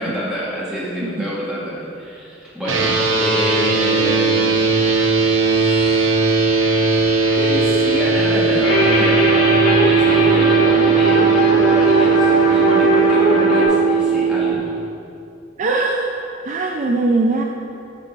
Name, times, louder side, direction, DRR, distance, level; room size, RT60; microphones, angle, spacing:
voice 1, 0.0-6.2 7.3-14.8, equal, 5° right, -8 dB, 1.7 m, -28 dB
sound 1, 2.6-14.5, right 5 dB, 85° right, 0.9 m, -17 dB
sound 2, 8.6-13.6, left 1 dB, 75° left, 1.9 m, -19 dB
voice 2, 15.6-16.1 16.4-17.4, right 3 dB, 40° right, 1 dB, 0.4 m, -20 dB
7.2 x 5.2 x 5.3 m, 2.7 s
head